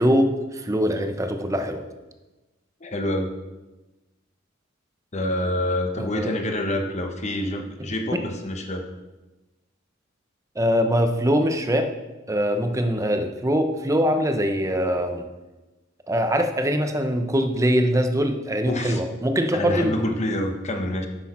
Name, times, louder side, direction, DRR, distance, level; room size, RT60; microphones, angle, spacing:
voice 1, 0.0-1.8 6.0-6.3 10.6-11.9 12.3-15.2 16.1-19.9, equal, 15° right, 6 dB, 0.7 m, -22 dB
voice 2, 2.8-3.3 5.1-8.8 18.7-19.0 19.5-21.1, left 1 dB, 35° left, 4 dB, 1.0 m, -27 dB
10.0 x 6.2 x 4.3 m, 1.1 s
head